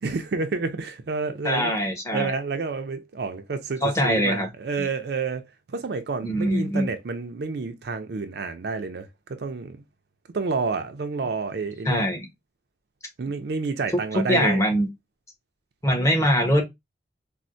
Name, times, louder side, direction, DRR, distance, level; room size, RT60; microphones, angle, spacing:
voice 1, 0.0-1.7 2.1-9.8 10.3-12.1 13.2-14.6, right 4 dB, 55° right, 0.4 m, -29 dB
voice 2, 1.4-2.3 3.8-4.5 4.8-4.9 6.2-6.9 11.8-12.2 13.9-14.9 15.8-16.6, equal, 15° left, 0.8 m, -22 dB
4.2 x 2.0 x 2.5 m
head